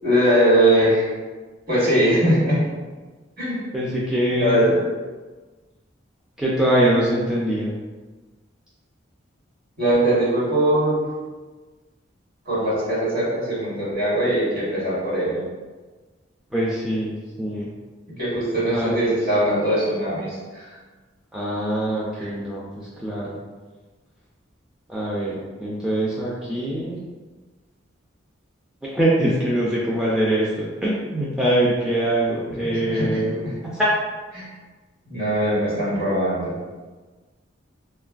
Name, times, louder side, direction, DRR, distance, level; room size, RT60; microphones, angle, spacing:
voice 1, 0.0-1.0 1.7-2.6 3.4-3.6 4.4-4.8 9.8-11.0 12.5-15.4 18.2-20.8 22.2-22.3 32.6-33.2 33.4-33.5 34.3-34.4 35.1-36.5, right 1 dB, 50° right, -8 dB, 1.2 m, -21 dB
voice 2, 3.7-4.6 6.4-7.7 16.5-17.7 18.7-19.1 21.3-23.4 24.9-27.0 28.9-33.4 33.7-33.9, right 1 dB, 5° right, -8 dB, 0.3 m, -23 dB
3.1 x 2.2 x 2.4 m, 1.3 s
head